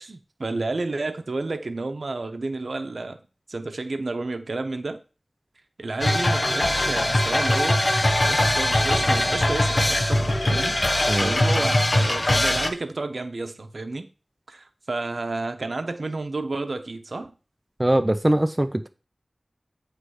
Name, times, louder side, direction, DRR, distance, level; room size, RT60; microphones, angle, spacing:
voice 1, 0.0-3.2 3.5-5.0 5.8-7.8 8.2-14.1 14.5-17.3, right 3 dB, 80° right, 0.8 m, -31 dB
sound 1, 6.0-12.7, left 1 dB, 50° left, 1.0 m, -21 dB
voice 2, 17.8-18.9, right 1 dB, 25° right, 0.6 m, -22 dB
7.8 x 3.3 x 6.3 m
wide cardioid pair, 55°, 0 cm